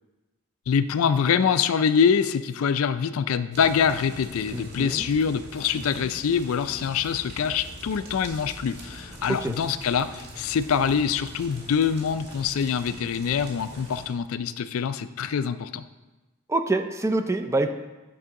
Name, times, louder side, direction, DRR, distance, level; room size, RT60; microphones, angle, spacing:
voice 1, 0.7-15.8, left 7 dB, 75° left, 13 dB, 0.4 m, -24 dB
sound 1, 3.5-14.1, right 1 dB, 50° right, 1.8 m, -43 dB
voice 2, 4.5-5.1 5.7-6.1 9.3-9.5 16.5-17.7, right 2 dB, 15° right, 8 dB, 0.4 m, -26 dB
9.4 x 6.1 x 3.6 m, 1.1 s
head